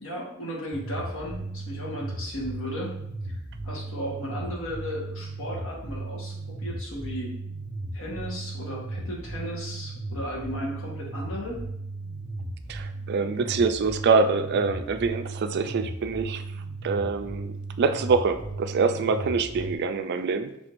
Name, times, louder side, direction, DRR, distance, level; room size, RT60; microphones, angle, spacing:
voice 1, 0.0-2.9 3.3-7.3 7.9-11.6, equal, 70° left, -3 dB, 1.3 m, -35 dB
sound 1, 0.7-19.7, right 2 dB, 5° right, 0.9 m, -36 dB
voice 2, 12.7-16.4 16.8-20.5, right 4 dB, 50° right, 8 dB, 0.3 m, -25 dB
5.9 x 3.4 x 2.5 m, 0.78 s
head